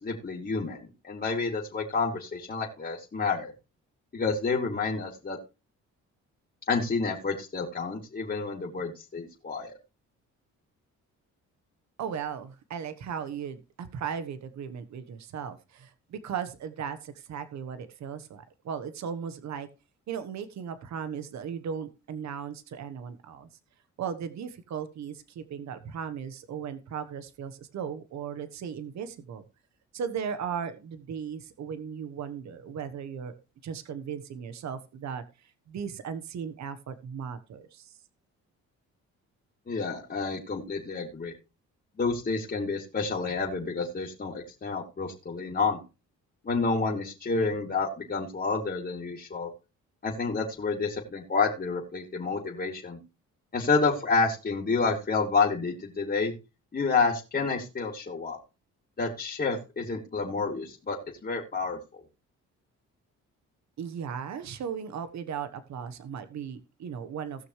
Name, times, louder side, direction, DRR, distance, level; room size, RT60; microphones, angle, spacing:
voice 1, 0.0-3.5 4.1-5.4 6.7-9.7 39.7-41.3 42.0-45.8 46.4-49.5 50.0-53.0 53.5-56.3 56.7-58.4 59.0-61.8, left 4 dB, 30° left, -4 dB, 2.9 m, -29 dB
voice 2, 12.0-19.7 20.1-23.5 24.0-29.4 29.9-33.3 33.6-35.2 35.7-37.9 63.8-67.5, right 7 dB, 65° right, 11 dB, 1.3 m, -37 dB
18.0 x 6.4 x 3.2 m, 0.29 s
cardioid pair, 90°, 30 cm